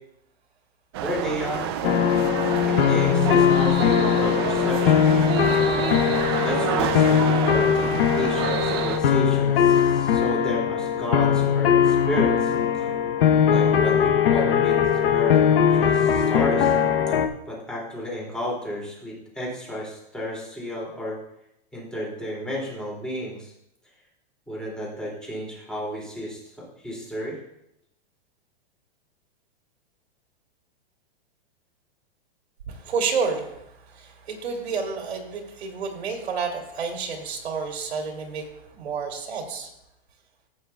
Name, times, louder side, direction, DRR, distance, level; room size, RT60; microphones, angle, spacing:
voice 1, 0.9-1.7 2.6-5.1 6.4-12.9 13.5-14.8 15.1-16.8 17.1-17.2 17.5-21.2 21.7-23.5 24.5-27.4, equal, 5° left, -5 dB, 2.5 m, -32 dB
sound 1, 0.9-9.0, right 10 dB, 25° right, 0.4 m, -28 dB
sound 2, 1.8-17.3, left 8 dB, 65° left, 0.9 m, -20 dB
voice 2, 32.7-39.7, right 5 dB, 90° right, 1 dB, 2.6 m, -30 dB
14.5 x 8.4 x 2.3 m, 0.81 s
hypercardioid pair, 155°, 31 cm